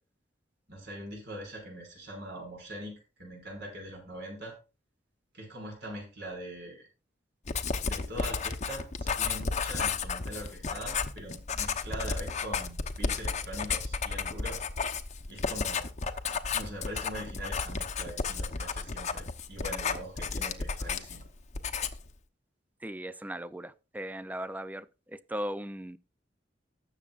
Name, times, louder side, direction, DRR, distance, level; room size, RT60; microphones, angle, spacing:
voice 1, 0.7-4.5 5.3-6.8 7.8-14.6 15.3-15.9 16.5-21.3, right 1 dB, 65° right, 5.6 m, -42 dB
Writing, 7.5-21.3 21.5-22.1, left 5 dB, 40° left, 0.9 m, -33 dB
voice 2, 22.8-26.0, equal, 10° right, 0.4 m, -38 dB
19.0 x 7.1 x 2.4 m
head